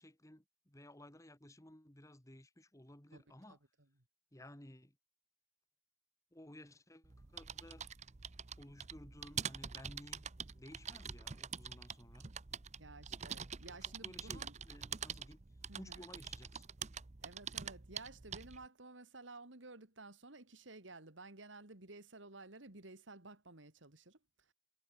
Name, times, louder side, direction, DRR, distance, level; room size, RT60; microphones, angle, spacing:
voice 1, 0.0-3.6 4.3-5.0 6.3-7.9 8.6-10.3 10.5-12.3 13.7-15.4 15.8-16.7, left 1 dB, 15° left, 1.9 m, -56 dB
sound 1, 7.0-18.6, right 7 dB, 35° right, 0.8 m, -46 dB
voice 2, 12.8-14.5 15.7-16.0 17.2-24.2, right 2 dB, 80° right, 2.9 m, -54 dB
head